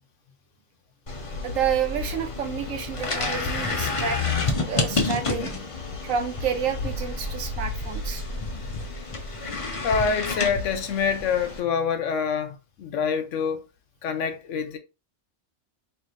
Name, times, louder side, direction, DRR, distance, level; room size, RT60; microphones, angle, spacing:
sound 1, 1.1-11.6, left 3 dB, 40° left, 0.5 m, -29 dB
voice 1, 1.4-4.2 4.5-5.5 6.0-8.2 9.3-9.4, right 7 dB, 75° right, 1.1 m, -29 dB
voice 2, 9.8-13.6 14.0-14.8, left 6 dB, 70° left, 1.0 m, -26 dB
4.6 x 3.1 x 2.5 m
omnidirectional pair, 1.4 m